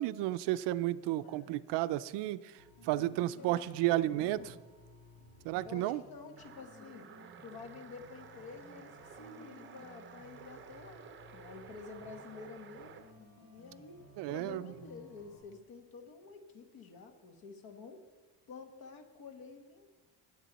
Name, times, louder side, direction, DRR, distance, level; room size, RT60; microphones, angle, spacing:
voice 1, 0.0-2.5 2.8-4.5 5.4-6.0 14.2-14.7, right 15 dB, 70° right, 15 dB, 0.6 m, -32 dB
voice 2, 1.1-1.6 3.3-4.6 5.6-7.1 7.4-13.0 13.5-18.0 18.5-19.9, left 4 dB, 55° left, 5 dB, 1.7 m, -50 dB
sound 1, 2.6-15.4, equal, 80° left, 2.6 m, -57 dB
sound 2, 6.4-13.1, right 7 dB, 25° right, 0.7 m, -53 dB
18.5 x 8.4 x 4.1 m, 1.4 s
cardioid pair, 155°, 44 cm